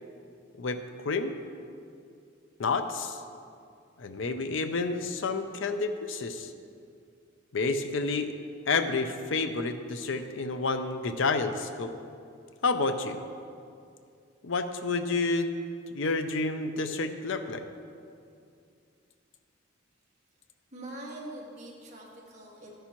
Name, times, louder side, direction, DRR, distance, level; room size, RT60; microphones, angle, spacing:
voice 1, 0.6-1.3 2.6-3.2 4.0-6.5 7.5-8.3 8.7-11.9 12.6-13.2 14.4-15.5 15.9-17.6, left 3 dB, 70° left, 8 dB, 0.5 m, -29 dB
voice 2, 20.7-22.7, right 1 dB, 35° right, -4 dB, 1.8 m, -43 dB
13.0 x 10.0 x 3.0 m, 2.4 s
head